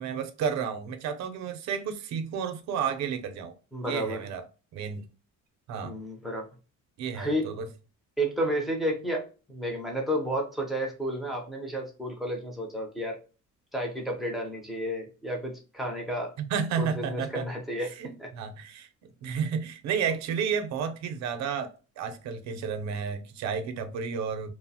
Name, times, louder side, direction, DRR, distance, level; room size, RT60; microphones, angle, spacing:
voice 1, 0.0-3.6 3.8-4.5 4.7-5.1 5.7-6.0 7.0-7.7 16.4-17.5 17.8-18.9 19.2-24.5, right 7 dB, 60° right, 0.6 m, -32 dB
voice 2, 3.7-4.2 5.8-6.4 7.1-7.5 8.2-9.2 9.5-13.2 13.7-16.3 16.8-17.9 18.2-18.3, equal, ahead, 0.6 m, -31 dB
2.8 x 2.0 x 2.7 m
cardioid pair, 165°, 31 cm